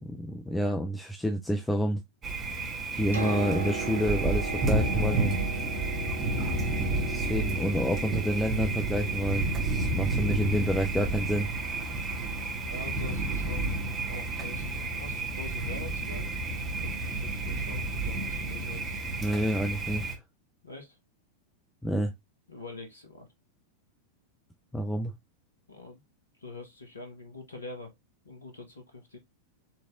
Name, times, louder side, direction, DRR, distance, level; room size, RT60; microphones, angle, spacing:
voice 1, 0.0-2.0 2.9-5.4 7.1-11.5 19.2-20.1 21.8-22.1 24.7-25.1, equal, 5° left, 0.6 m, -29 dB
Thunder, 2.2-20.1, right 2 dB, 25° right, 1.4 m, -31 dB
Piano, 2.9-16.6 17.7-17.8, right 3 dB, 75° right, 1.4 m, -40 dB
voice 2, 12.6-14.7 14.9-16.3 16.7-19.0 20.6-21.0 22.5-23.3 25.7-26.0 26.4-27.9 28.2-29.2, left 2 dB, 75° left, 1.1 m, -44 dB
5.9 x 3.3 x 2.5 m
figure-of-eight pair, 90°, 0 cm